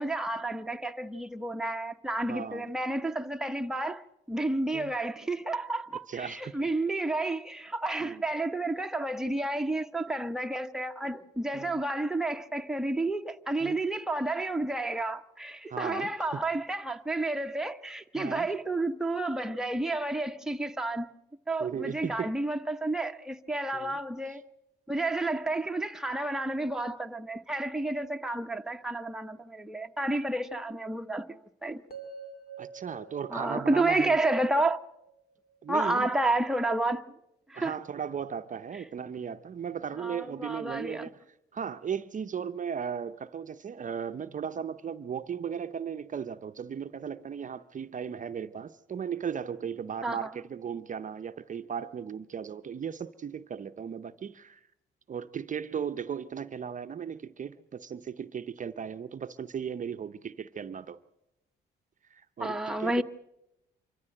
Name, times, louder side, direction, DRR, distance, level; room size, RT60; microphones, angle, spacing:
voice 1, 0.0-21.1 21.5-24.4 24.9-31.8 33.3-34.8 35.7-37.1 37.5-37.8 40.0-41.1 50.0-50.3 62.4-63.0, right 2 dB, 5° right, 0.9 m, -31 dB
voice 2, 2.3-2.7 4.7-4.9 6.1-6.6 8.0-8.2 11.5-11.8 13.6-13.8 15.7-16.4 18.1-18.5 21.6-22.3 23.7-24.0 24.3-24.4 32.6-34.2 35.6-36.1 37.5-41.2 41.5-54.6 55.1-61.0 62.1-63.0, right 7 dB, 40° right, 0.7 m, -36 dB
sound 1, 31.9-36.0, right 5 dB, 50° left, 2.7 m, -48 dB
25.0 x 14.0 x 7.8 m
cardioid pair, 90°, 20 cm